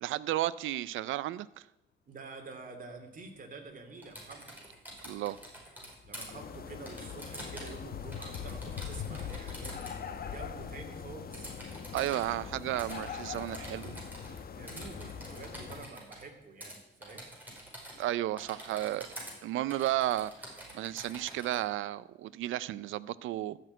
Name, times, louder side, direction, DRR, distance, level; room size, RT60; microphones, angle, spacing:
voice 1, 0.0-1.5 5.0-5.4 11.9-14.0 18.0-19.1 19.4-23.6, right 14 dB, 80° right, 0.5 m, -33 dB
voice 2, 2.1-4.6 6.0-9.8 10.1-11.5 14.5-17.3, right 4 dB, 45° right, 2.7 m, -48 dB
Typing, 4.0-6.3 6.9-7.8 8.1-10.0 11.3-12.3 12.8-14.4 14.7-16.2 16.6-16.8 17.0-18.1 18.4-19.3 19.7-21.6, right 1 dB, 10° right, 4.9 m, -47 dB
sound 1, 4.5-4.7 5.1-13.9, left 8 dB, 75° left, 1.0 m, -46 dB
sound 2, 6.3-15.9, left 6 dB, 50° left, 1.2 m, -43 dB
13.0 x 6.3 x 9.0 m
cardioid pair, 90°, 20 cm